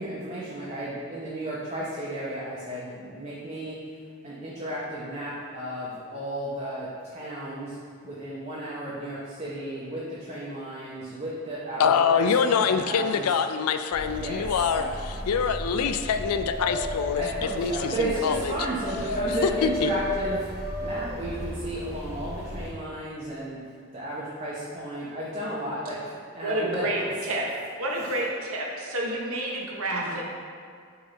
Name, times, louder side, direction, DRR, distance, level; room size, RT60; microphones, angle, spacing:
voice 1, 0.0-3.9 4.2-7.8 8.0-13.3 14.2-15.2 17.1-23.7 23.9-27.5 27.9-28.1 29.9-30.2, right 1 dB, 30° right, -8 dB, 0.8 m, -34 dB
voice 2, 11.8-14.8 15.3-17.2 17.6-18.5 19.4-19.9, left 6 dB, 85° left, 9 dB, 0.4 m, -24 dB
sound 1, 13.9-22.7, equal, 30° left, 1.2 m, -38 dB
Dog, 15.7-21.2, left 2 dB, 60° left, 0.8 m, -33 dB
voice 3, 26.4-27.4 27.8-30.2, right 1 dB, 75° right, -1 dB, 1.0 m, -29 dB
6.7 x 3.6 x 4.0 m, 2.3 s
head